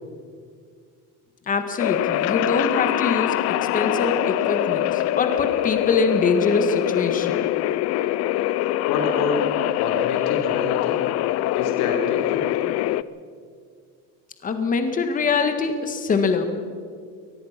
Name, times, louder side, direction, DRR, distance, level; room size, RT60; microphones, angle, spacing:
voice 1, 1.5-7.4 14.4-16.5, left 4 dB, 25° left, 7 dB, 1.6 m, -24 dB
sound 1, 1.8-13.0, left 14 dB, 50° left, 0.5 m, -23 dB
voice 2, 8.9-9.4 9.8-11.0 11.5-12.6, left 4 dB, 75° left, 2 dB, 3.4 m, -27 dB
23.0 x 19.0 x 5.9 m, 2.1 s
cardioid pair, 175°, 33 cm